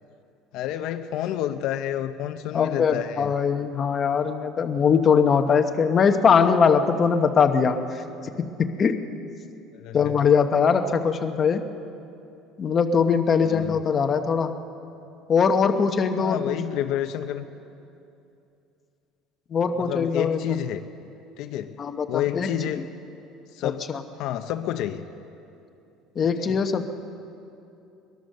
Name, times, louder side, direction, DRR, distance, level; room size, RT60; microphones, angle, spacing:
voice 1, 0.5-3.3 9.7-10.2 13.4-13.8 16.2-17.4 19.8-20.9 21.4-21.8 22.1-22.9 23.5-23.9 24.2-25.1 26.4-26.6, left 11 dB, 55° left, 7 dB, 0.7 m, -29 dB
voice 2, 2.5-8.0 8.4-9.0 9.9-11.6 12.6-14.5 15.3-16.6 19.5-20.4 21.8-22.5 23.6-24.0 26.2-26.9, left 6 dB, 25° left, 7 dB, 0.9 m, -21 dB
22.0 x 21.0 x 6.6 m, 2.7 s
cardioid pair, 170°, 0 cm